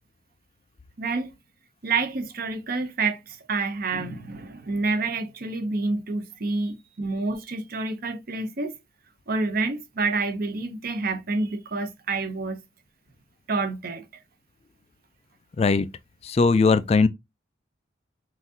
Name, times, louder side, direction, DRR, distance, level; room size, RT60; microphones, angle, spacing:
voice 1, 1.0-1.3 1.8-8.7 9.3-12.6 13.5-14.0, right 3 dB, 50° right, 0.7 m, -28 dB
voice 2, 15.6-15.9 16.2-17.1, left 4 dB, 30° left, 0.3 m, -19 dB
5.8 x 2.6 x 2.7 m
head